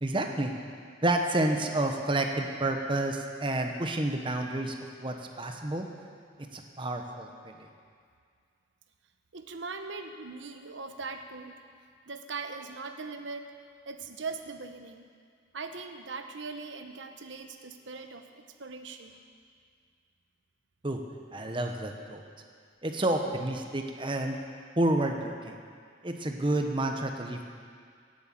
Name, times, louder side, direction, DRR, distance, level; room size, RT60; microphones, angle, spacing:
voice 1, 0.0-0.5 1.0-5.9 6.4-7.7 20.8-21.0 21.3-22.2 22.8-24.4 24.8-25.6 26.0-27.5, right 1 dB, 25° right, 3 dB, 1.0 m, -30 dB
voice 2, 9.3-11.5 12.1-13.5 13.9-15.1 15.5-19.2, right 4 dB, 75° right, 6 dB, 0.9 m, -40 dB
17.0 x 8.2 x 7.7 m, 2.1 s
head